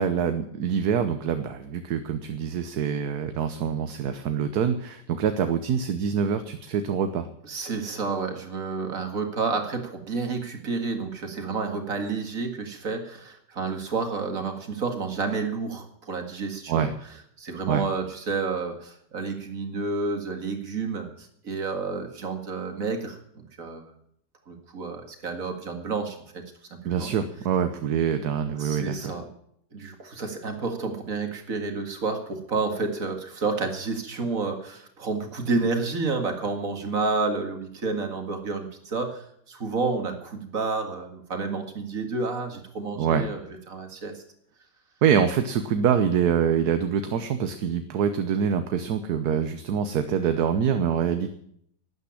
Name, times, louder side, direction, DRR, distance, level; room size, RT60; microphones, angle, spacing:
voice 1, 0.0-7.3 16.7-16.9 17.7-17.8 26.8-29.1 43.0-43.2 45.0-51.3, right 7 dB, 65° right, 9 dB, 1.4 m, -25 dB
voice 2, 7.4-16.9 17.4-23.9 24.5-26.2 26.9-27.1 28.6-29.3 29.7-44.2, right 4 dB, 50° right, 5 dB, 2.4 m, -30 dB
12.5 x 9.6 x 9.9 m, 0.69 s
omnidirectional pair, 1.9 m